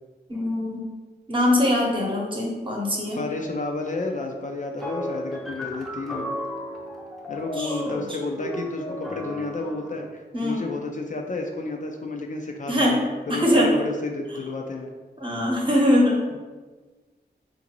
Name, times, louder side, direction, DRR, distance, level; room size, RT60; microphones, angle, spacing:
voice 1, 0.3-0.9 1.3-3.2 7.6-8.2 10.3-10.7 12.7-13.0 13.3-13.7 15.2-16.3, left 1 dB, 30° right, -2 dB, 0.9 m, -22 dB
voice 2, 3.2-6.3 7.3-14.9 16.3-16.4, left 3 dB, 45° left, 2 dB, 0.4 m, -31 dB
sound 1, 4.8-10.0, equal, ahead, 0.6 m, -34 dB
3.7 x 2.5 x 3.0 m, 1.3 s
wide cardioid pair, 75°, 18 cm